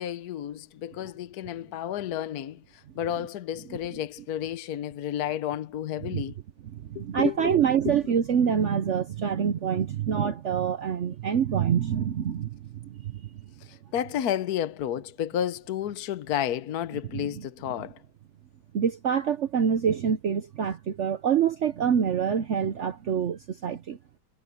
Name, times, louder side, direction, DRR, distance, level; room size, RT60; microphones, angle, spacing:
voice 1, 0.0-6.4 6.9-7.5 7.8-7.9 13.9-18.0, left 10 dB, 65° left, 1.3 m, -31 dB
voice 2, 7.0-13.2 17.1-17.4 18.7-24.0, right 8 dB, 55° right, 0.9 m, -26 dB
omnidirectional pair, 1.8 m